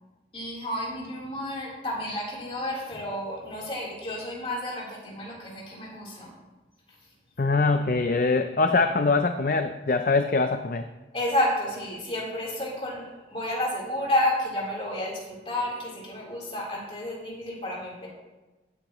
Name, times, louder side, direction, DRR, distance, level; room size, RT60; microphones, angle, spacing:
voice 1, 0.3-6.3 11.1-18.1, left 1 dB, 30° left, -5 dB, 3.7 m, -31 dB
voice 2, 7.4-10.8, left 3 dB, 50° left, 7 dB, 0.5 m, -23 dB
16.0 x 8.7 x 3.1 m, 1.1 s
head